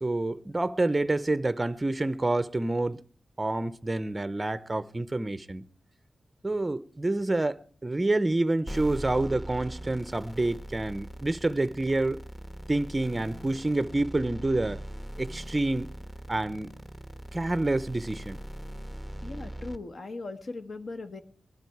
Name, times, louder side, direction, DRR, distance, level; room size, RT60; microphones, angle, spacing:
voice 1, 0.0-3.0 3.4-5.6 6.4-12.2 12.7-14.8 15.2-15.9 16.3-16.7 17.3-18.4, right 2 dB, 20° right, 0.6 m, -28 dB
sound 1, 8.7-19.8, right 1 dB, 10° left, 1.1 m, -40 dB
voice 2, 19.2-21.2, left 3 dB, 55° left, 1.5 m, -39 dB
20.5 x 12.0 x 4.7 m
wide cardioid pair, 120°, 0 cm